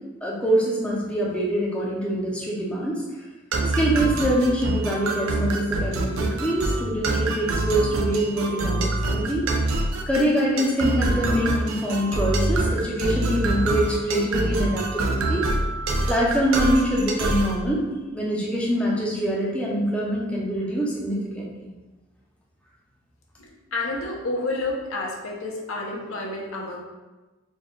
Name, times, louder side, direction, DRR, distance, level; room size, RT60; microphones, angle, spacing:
voice 1, 0.2-3.0 3.7-9.5 10.1-15.5 16.1-21.7, equal, 5° left, -4 dB, 0.5 m, -24 dB
sound 1, 3.5-17.6, right 2 dB, 90° right, 0.5 m, -25 dB
voice 2, 23.4-26.8, left 2 dB, 85° left, -1 dB, 0.8 m, -30 dB
4.1 x 2.3 x 3.6 m, 1.1 s
head